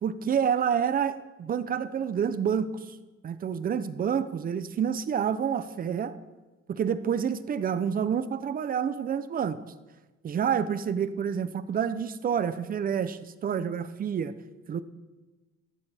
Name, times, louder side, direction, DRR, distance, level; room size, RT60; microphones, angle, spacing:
voice 1, 0.0-3.0 3.2-6.1 6.7-9.6 10.2-14.3 14.7-14.8, right 7 dB, 30° right, 13 dB, 0.5 m, -28 dB
13.0 x 12.5 x 3.4 m, 1.2 s
cardioid pair, 160°, 29 cm